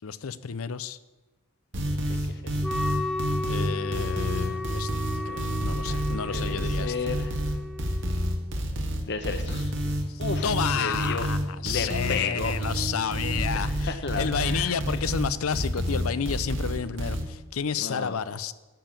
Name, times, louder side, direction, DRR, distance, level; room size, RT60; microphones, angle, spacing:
voice 1, 0.0-1.0 2.1-2.2 3.5-4.9 5.3-6.9 10.1-18.5, left 7 dB, 80° left, 15 dB, 0.6 m, -31 dB
sound 1, 1.7-17.2, equal, 60° right, 1.9 m, -29 dB
voice 2, 1.8-2.5 5.2-7.4 9.1-9.7 10.2-11.3 11.6-12.6 13.5-15.0 17.8-18.2, left 5 dB, 55° left, 9 dB, 1.1 m, -34 dB
Wind instrument woodwind instrument, 2.6-8.5, left 2 dB, 5° left, 0.7 m, -35 dB
11.5 x 7.0 x 8.9 m, 1.2 s
head